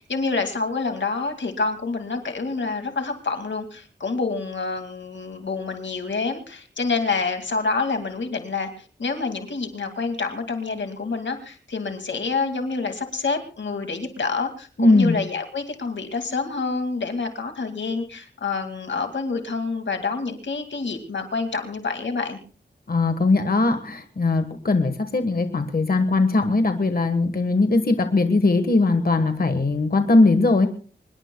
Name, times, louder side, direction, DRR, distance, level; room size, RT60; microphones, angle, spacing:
voice 1, 0.0-22.4, left 4 dB, 90° left, 6 dB, 2.2 m, -27 dB
voice 2, 14.8-15.2 22.9-30.7, left 3 dB, 55° left, 7 dB, 1.4 m, -20 dB
24.5 x 21.0 x 2.3 m, 0.40 s
wide cardioid pair, 80°, 19 cm